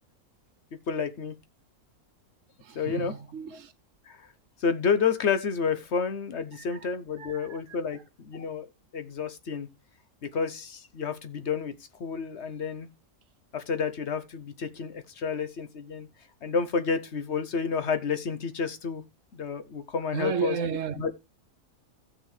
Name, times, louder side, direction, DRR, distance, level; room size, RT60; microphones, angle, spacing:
voice 1, 0.9-1.4 2.7-3.1 4.1-4.2 4.6-8.7 8.9-9.7 10.2-11.7 12.0-12.9 13.5-16.1 16.4-19.0 19.3-20.6 21.0-21.2, left 6 dB, 55° left, 1.0 m, -30 dB
voice 2, 2.6-3.7 6.5-6.9 7.2-7.6 20.1-21.0, right 7 dB, 65° right, 1.0 m, -33 dB
15.5 x 6.2 x 3.2 m
omnidirectional pair, 1.5 m